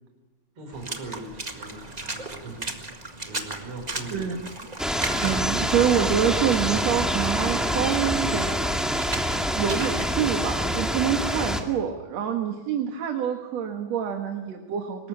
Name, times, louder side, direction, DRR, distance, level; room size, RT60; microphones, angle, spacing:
voice 1, 0.6-2.8 3.2-4.4, right 2 dB, 50° right, 3 dB, 6.1 m, -40 dB
Water / Splash splatter, 0.7-10.1, right 2 dB, 20° right, 1.4 m, -37 dB
voice 2, 4.1-4.5 5.2-8.6 9.6-15.1, right 8 dB, 65° right, 4 dB, 2.7 m, -26 dB
sound 1, 4.8-11.6, equal, ahead, 1.6 m, -26 dB
24.5 x 20.5 x 8.8 m, 1.3 s
omnidirectional pair, 3.3 m